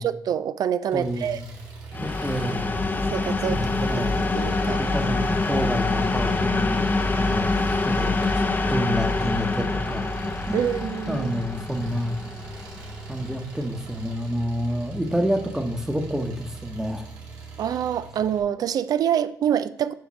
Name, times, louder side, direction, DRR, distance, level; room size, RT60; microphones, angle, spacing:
voice 1, 0.0-1.4 3.1-3.6 4.2-4.8 10.5-11.3 17.6-19.9, right 9 dB, 65° right, 14 dB, 0.4 m, -26 dB
voice 2, 0.9-1.5 2.0-2.7 3.5-4.2 4.6-8.1 8.7-10.1 10.5-10.6 11.1-12.2 13.1-17.1, equal, 10° right, 5 dB, 1.1 m, -29 dB
Engine, 0.9-18.4, right 4 dB, 85° right, 1.7 m, -40 dB
sound 1, 1.9-13.6, left 3 dB, 30° left, 0.7 m, -25 dB
7.3 x 3.5 x 6.2 m, 0.77 s
supercardioid pair, 55°, 7 cm